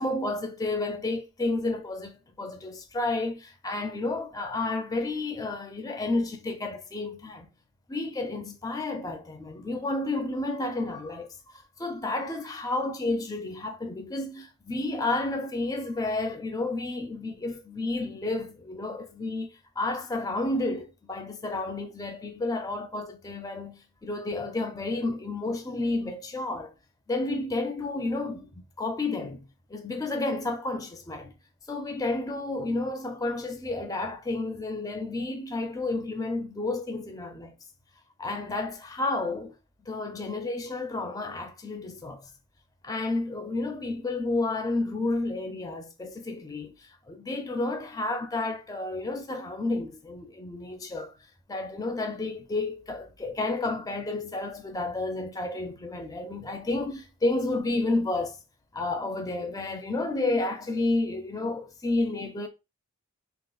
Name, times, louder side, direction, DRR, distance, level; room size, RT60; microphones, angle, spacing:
voice 1, 0.0-7.5 7.9-26.7 27.1-29.4 29.7-31.3 31.7-37.5 38.2-39.5 39.8-42.3 42.8-46.7 47.1-51.1 51.5-58.4 58.7-62.5, left 2 dB, 15° left, 0.4 m, -31 dB
3.7 x 2.8 x 2.2 m
head